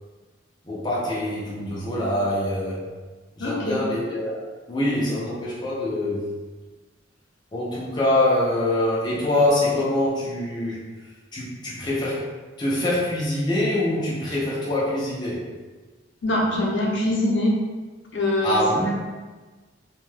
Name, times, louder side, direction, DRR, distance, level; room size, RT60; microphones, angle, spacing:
voice 1, 0.6-3.0 3.4-4.4 4.7-6.3 7.5-10.9 11.3-12.3 12.6-15.5 18.4-19.0, left 1 dB, 20° left, -7 dB, 0.4 m, -24 dB
voice 2, 3.4-3.8 16.2-17.5 18.1-18.6, left 1 dB, 60° left, -3 dB, 0.7 m, -23 dB
2.6 x 2.2 x 3.2 m, 1.3 s
head